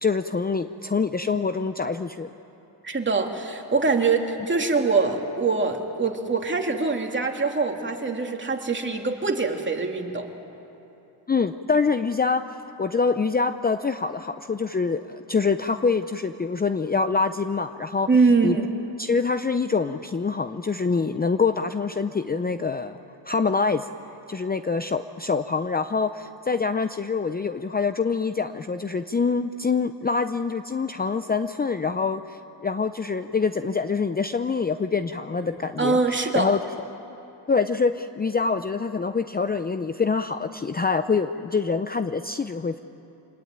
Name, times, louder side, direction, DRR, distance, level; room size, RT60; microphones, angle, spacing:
voice 1, 0.0-2.3 11.3-12.5 12.8-18.1 18.4-18.6 19.0-23.0 23.3-23.9 24.3-36.6 37.5-42.8, left 4 dB, 20° left, 10 dB, 0.7 m, -25 dB
voice 2, 2.8-10.3 18.1-18.8 35.8-36.5, right 4 dB, 25° right, 2 dB, 2.8 m, -23 dB
26.0 x 20.5 x 9.0 m, 3.0 s
cardioid pair, 85°, 44 cm